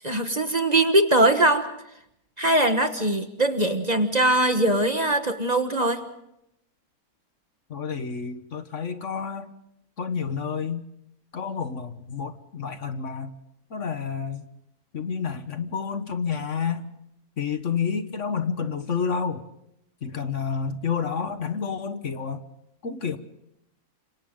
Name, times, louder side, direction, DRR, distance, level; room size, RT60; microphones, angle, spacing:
voice 1, 0.0-1.7 2.4-6.0, right 1 dB, 30° right, 7 dB, 1.4 m, -21 dB
voice 2, 7.7-9.5 10.0-10.9 11.3-13.3 13.7-14.5 14.9-16.9 17.4-19.4 20.0-22.4 22.8-23.2, left 6 dB, 55° left, 9 dB, 1.5 m, -29 dB
29.5 x 26.5 x 3.8 m, 0.78 s
omnidirectional pair, 1.5 m